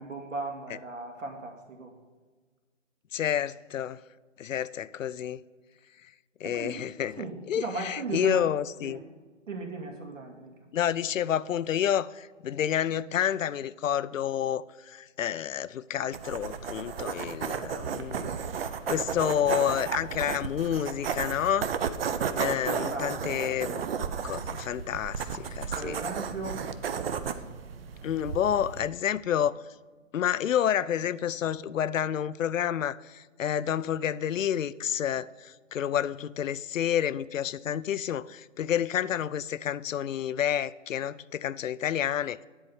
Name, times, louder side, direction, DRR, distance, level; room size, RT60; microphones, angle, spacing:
voice 1, 0.0-1.9 6.4-6.8 7.2-8.4 8.8-9.0 9.5-10.5 22.7-23.6 25.8-26.7, right 3 dB, 80° right, 2.2 m, -37 dB
voice 2, 3.1-4.0 4.4-5.4 6.4-9.0 10.7-18.3 18.9-21.7 22.4-23.9 24.2-26.0 28.0-29.6 30.1-42.4, left 9 dB, 85° left, 0.5 m, -29 dB
sound 1, 16.1-28.9, right 7 dB, 50° right, 0.7 m, -33 dB
10.0 x 4.5 x 6.9 m
hypercardioid pair, 150°, 38 cm